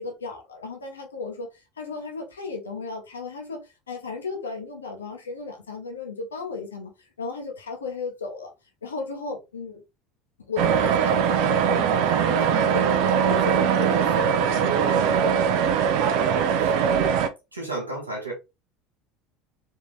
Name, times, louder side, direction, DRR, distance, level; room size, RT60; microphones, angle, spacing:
voice 1, 0.0-8.5 8.8-9.8 10.5-15.6, left 4 dB, 80° left, 0.7 m, -35 dB
sound 1, 10.6-17.3, right 7 dB, 60° right, 0.4 m, -21 dB
voice 2, 16.5-17.2 17.5-18.3, right 2 dB, 85° right, 0.9 m, -33 dB
3.5 x 2.8 x 3.0 m
figure-of-eight pair, 70°, 0 cm